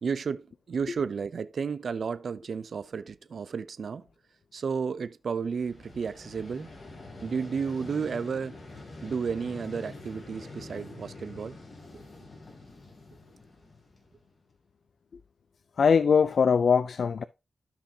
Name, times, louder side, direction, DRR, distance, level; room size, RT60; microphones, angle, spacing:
voice 1, 0.0-4.1 4.5-6.7 7.2-8.6 9.0-11.6, right 5 dB, 65° right, 0.4 m, -32 dB
Vehicle, 5.4-14.4, left 2 dB, 40° left, 3.2 m, -46 dB
voice 2, 15.8-17.2, left 6 dB, 65° left, 0.3 m, -21 dB
12.5 x 5.6 x 2.7 m
wide cardioid pair, 110°, 0 cm